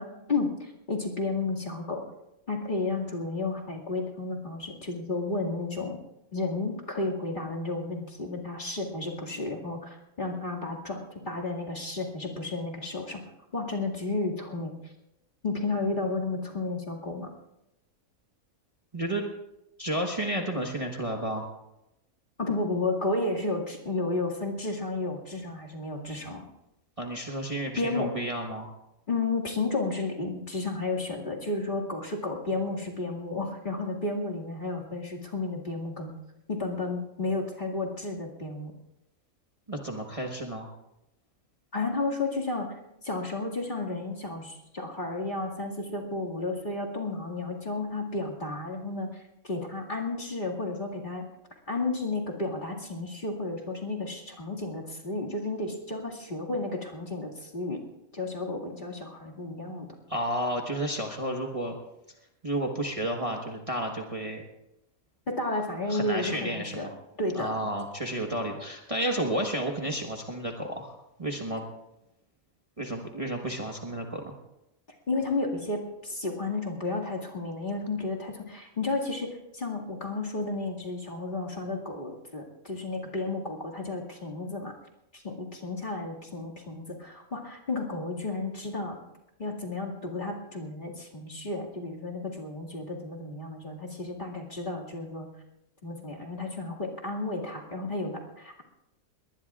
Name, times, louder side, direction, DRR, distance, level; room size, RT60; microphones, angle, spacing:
voice 1, 0.0-2.1 2.5-6.0 6.3-13.2 13.5-14.7 15.4-17.3 22.4-26.5 27.8-28.1 29.1-36.1 36.5-38.7 41.7-42.8 43.0-51.3 51.7-57.8 58.1-59.9 65.3-66.9 67.2-67.7 75.1-84.7 85.1-89.0 89.4-95.3 95.8-98.6, left 2 dB, 35° left, -2 dB, 2.3 m, -32 dB
voice 2, 18.9-19.2 19.8-21.5 27.0-28.7 39.7-40.7 60.1-61.8 62.4-64.4 65.9-66.9 67.3-71.6 72.8-74.3, right 1 dB, 25° right, 1 dB, 1.3 m, -31 dB
22.0 x 19.5 x 2.4 m, 0.88 s
omnidirectional pair, 1.5 m